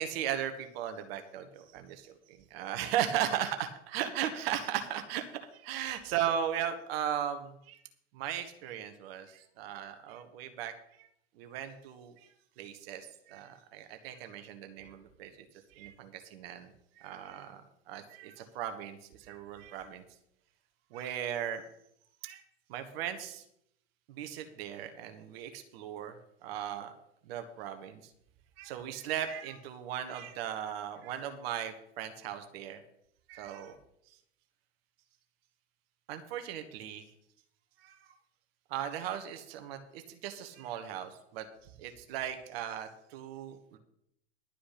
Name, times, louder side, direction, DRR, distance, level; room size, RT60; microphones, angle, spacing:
voice 1, 0.0-5.3 5.5-7.8 8.1-11.1 11.4-12.3 12.6-15.3 15.7-20.0 20.9-21.6 22.2-22.4 22.7-23.4 24.1-26.2 26.4-26.9 27.2-28.1 28.6-32.8 33.3-33.8 34.1-34.2 36.1-37.0 37.8-38.1 38.7-43.8, right 10 dB, 55° right, 7 dB, 1.3 m, -37 dB
12.0 x 5.1 x 8.5 m, 0.74 s
hypercardioid pair, 95°, 35 cm